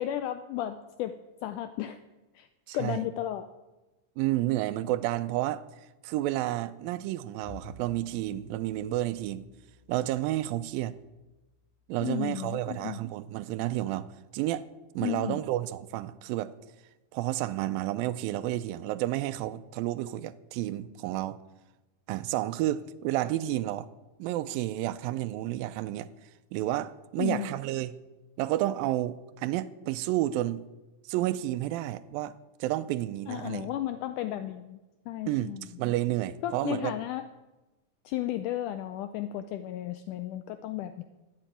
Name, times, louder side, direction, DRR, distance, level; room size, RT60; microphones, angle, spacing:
voice 1, 0.0-2.0 2.4-2.5 2.7-3.4 12.0-13.0 15.0-15.4 27.2-27.5 33.3-34.8 35.1-35.7 36.4-37.2 38.1-41.0, left 12 dB, 85° left, 1.8 m, -34 dB
voice 2, 2.7-3.0 4.2-5.6 6.0-9.5 9.9-10.9 11.9-14.1 14.3-14.7 15.0-16.5 17.1-21.4 22.1-23.9 24.2-26.1 26.5-27.9 28.4-30.6 31.1-32.3 32.6-33.7 35.3-35.5 35.8-36.9, right 15 dB, 80° right, 2.3 m, -30 dB
Bowed string instrument, 7.4-13.9, left 3 dB, 65° left, 4.1 m, -55 dB
12.0 x 8.2 x 9.1 m
omnidirectional pair, 4.2 m